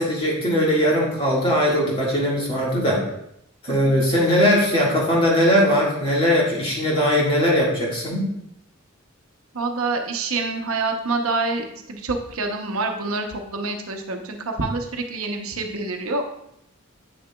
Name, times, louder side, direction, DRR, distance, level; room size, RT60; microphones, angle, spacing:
voice 1, 0.0-3.0 3.6-8.2, equal, 25° left, -4 dB, 1.8 m, -20 dB
voice 2, 3.7-4.0 9.5-16.2, right 3 dB, 90° right, 4 dB, 0.9 m, -27 dB
8.0 x 6.6 x 2.3 m, 0.78 s
head